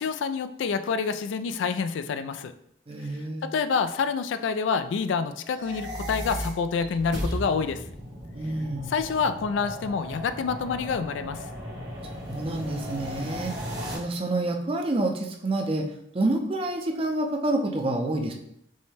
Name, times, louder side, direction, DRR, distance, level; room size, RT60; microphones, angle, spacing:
voice 1, 0.0-2.5 3.4-7.8 8.9-11.4, left 5 dB, 85° left, 11 dB, 0.3 m, -27 dB
voice 2, 2.9-3.5 8.3-8.9 12.1-13.5 13.9-18.3, right 2 dB, 30° right, 3 dB, 0.5 m, -28 dB
sound 1, 5.4-13.9, equal, 90° right, 1.6 m, -36 dB
5.4 x 2.2 x 3.3 m, 0.73 s
head